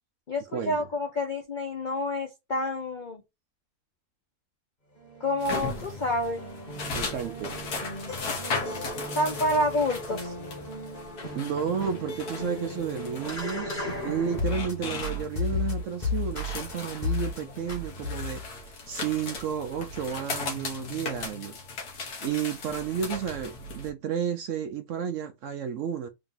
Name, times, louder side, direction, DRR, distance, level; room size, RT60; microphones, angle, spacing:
voice 1, 0.3-3.2 5.2-6.4 9.1-10.3, left 1 dB, 55° left, 0.5 m, -28 dB
sound 1, 5.0-14.7 15.0-16.7 17.0-17.4 17.7-18.5, left 3 dB, 30° left, 1.5 m, -34 dB
sound 2, 5.4-23.9, left 3 dB, 70° left, 1.5 m, -37 dB
voice 2, 6.9-7.6 11.3-18.4 18.9-21.5 22.2-26.1, right 8 dB, 70° right, 0.8 m, -32 dB
3.9 x 2.6 x 3.8 m
omnidirectional pair, 1.7 m